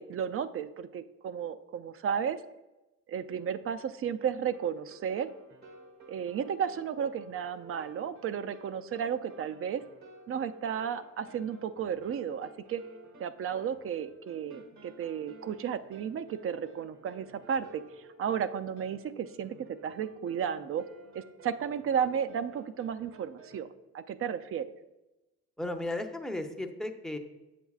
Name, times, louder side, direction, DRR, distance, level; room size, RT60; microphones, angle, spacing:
voice 1, 0.0-2.4 3.1-5.3 6.1-9.8 10.3-12.8 13.2-17.8 18.2-19.5 19.8-20.8 21.1-23.7 23.9-24.7, right 8 dB, 45° right, 12 dB, 0.4 m, -33 dB
sound 1, 4.4-23.6, right 2 dB, 70° right, 1.2 m, -54 dB
voice 2, 25.6-27.2, left 1 dB, ahead, 4 dB, 0.6 m, -35 dB
7.9 x 6.0 x 2.4 m, 1.0 s
cardioid pair, 90°, 30 cm